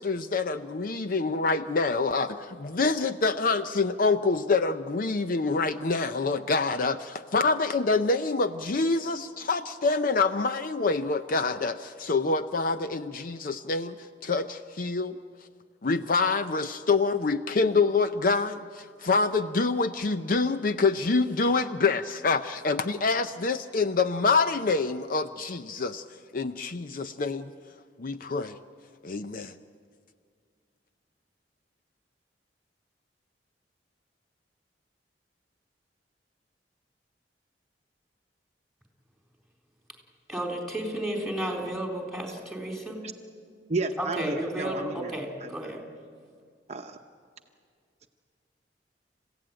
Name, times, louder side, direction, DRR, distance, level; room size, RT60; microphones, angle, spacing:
voice 1, 0.0-14.0 14.2-15.2 15.8-26.0 26.3-27.5 28.0-28.6 29.0-29.5, left 3 dB, 50° left, 0.6 m, -26 dB
voice 2, 40.3-43.0 44.0-45.8, right 1 dB, ahead, 4.0 m, -32 dB
voice 3, 43.7-45.1 45.4-45.5 46.7-47.0, right 3 dB, 40° right, 0.9 m, -32 dB
29.0 x 15.5 x 9.0 m
head